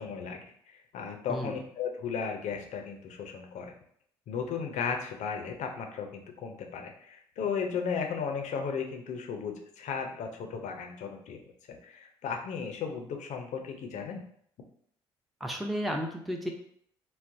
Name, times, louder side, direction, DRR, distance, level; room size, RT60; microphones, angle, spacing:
voice 1, 0.0-3.7 4.3-11.4 11.7-14.2, left 6 dB, 55° left, 3 dB, 0.6 m, -35 dB
voice 2, 15.4-16.5, equal, ahead, 1 dB, 0.6 m, -33 dB
3.9 x 2.1 x 2.6 m, 0.65 s
hypercardioid pair, 45°, 14 cm